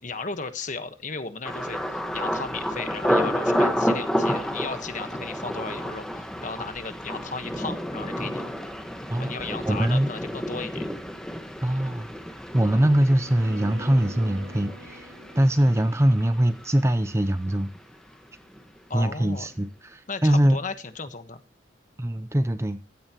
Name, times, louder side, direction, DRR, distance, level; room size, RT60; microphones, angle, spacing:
voice 1, 0.0-8.5 9.2-10.9 18.9-19.5 20.1-21.4, left 4 dB, 40° left, 1.3 m, -35 dB
Thunder, 1.4-17.2 17.5-18.1 18.5-18.8, equal, 5° left, 1.3 m, -30 dB
voice 2, 9.1-10.1 11.6-12.1 12.5-17.7 18.9-20.6 22.0-22.8, right 1 dB, 15° right, 0.6 m, -23 dB
Bowed string instrument, 13.1-17.1, right 1 dB, 80° right, 2.5 m, -46 dB
15.5 x 12.5 x 3.0 m
head